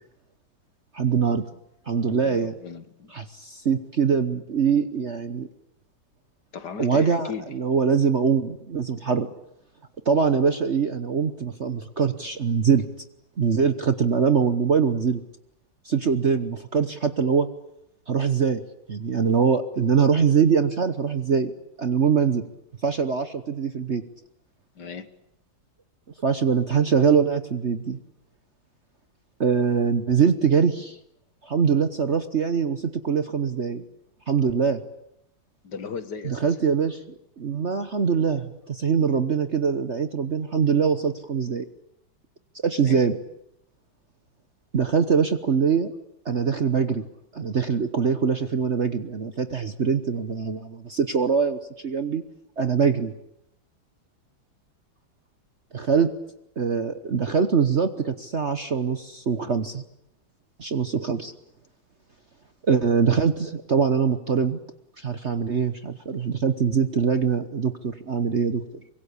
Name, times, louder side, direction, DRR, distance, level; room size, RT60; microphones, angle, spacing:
voice 1, 0.9-1.4 1.9-2.5 3.1-5.5 6.8-9.3 10.0-12.8 13.4-15.2 15.8-17.5 18.1-18.6 18.9-21.5 21.8-22.4 22.8-24.0 26.2-28.0 29.4-31.0 31.4-33.8 34.3-34.8 36.2-37.0 37.4-41.6 42.5-43.2 44.7-45.9 46.2-47.0 47.3-52.2 52.6-53.1 55.7-56.1 56.6-59.8 60.6-61.3 62.6-64.6 65.0-68.6, right 6 dB, 45° right, 10 dB, 1.1 m, -23 dB
voice 2, 2.2-3.1 6.5-7.6 24.8-25.1 35.6-36.7 42.8-43.0 56.0-56.1, left 6 dB, 60° left, 11 dB, 2.1 m, -36 dB
24.5 x 22.5 x 8.5 m, 0.80 s
omnidirectional pair, 2.2 m